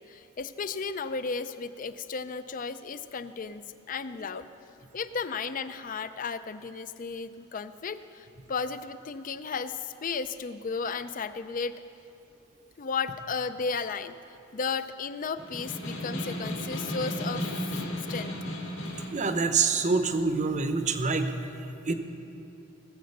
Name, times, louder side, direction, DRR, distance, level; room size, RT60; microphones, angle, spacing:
voice 1, 0.0-4.5 4.9-11.8 12.8-14.2 14.5-18.3, left 5 dB, 40° left, 12 dB, 0.4 m, -34 dB
Snare drum, 15.4-19.2, left 1 dB, 80° left, 3.7 m, -34 dB
voice 2, 19.1-21.3 21.9-22.0, right 4 dB, 35° right, 8 dB, 0.8 m, -26 dB
18.5 x 7.7 x 6.5 m, 2.8 s
head